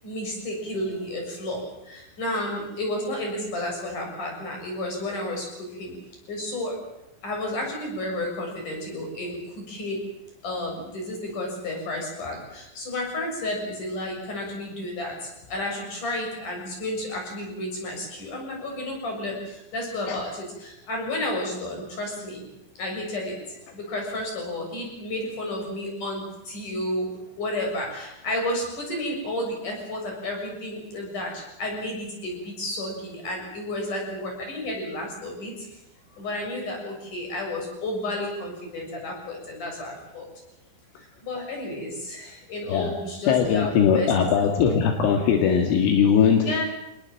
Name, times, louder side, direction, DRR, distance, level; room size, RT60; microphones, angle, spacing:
voice 1, 0.0-5.9 6.3-6.8 7.2-10.0 10.4-22.5 22.8-27.1 27.4-35.7 36.1-40.3 41.2-44.1 44.4-44.6 46.4-46.6, left 1 dB, 40° left, 1 dB, 8.1 m, -32 dB
voice 2, 43.3-46.6, left 7 dB, 75° left, 4 dB, 4.4 m, -20 dB
27.0 x 20.0 x 7.7 m, 0.88 s
omnidirectional pair, 5.8 m